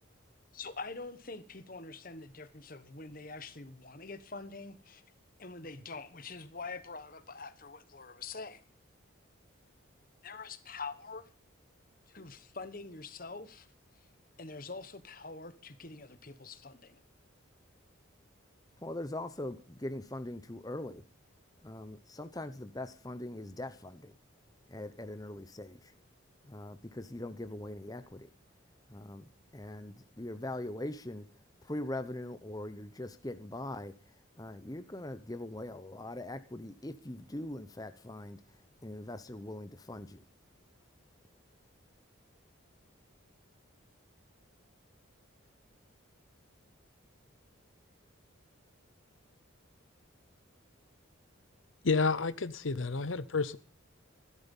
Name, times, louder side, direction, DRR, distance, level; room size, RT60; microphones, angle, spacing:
voice 1, 0.5-5.0 5.4-8.6 10.2-11.3 12.1-13.7 14.4-17.0, left 4 dB, 40° left, 1.3 m, -45 dB
voice 2, 18.8-21.0 21.6-24.1 24.7-25.9 26.4-28.3 28.9-29.3 29.5-31.3 31.6-40.2, left 1 dB, 20° left, 0.8 m, -42 dB
voice 3, 51.8-53.6, left 4 dB, 70° left, 0.8 m, -30 dB
15.5 x 12.0 x 5.4 m
head